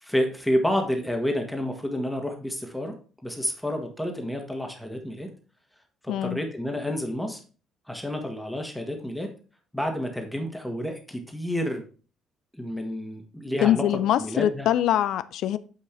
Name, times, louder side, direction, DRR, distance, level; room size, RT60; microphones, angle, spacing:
voice 1, 0.0-2.9 3.2-5.3 6.0-7.4 7.9-9.3 9.7-11.8 12.6-14.7, equal, 5° left, 1.6 m, -29 dB
voice 2, 6.1-6.4 13.6-15.6, left 11 dB, 60° left, 0.3 m, -23 dB
8.7 x 5.3 x 3.4 m
figure-of-eight pair, 45°, 0 cm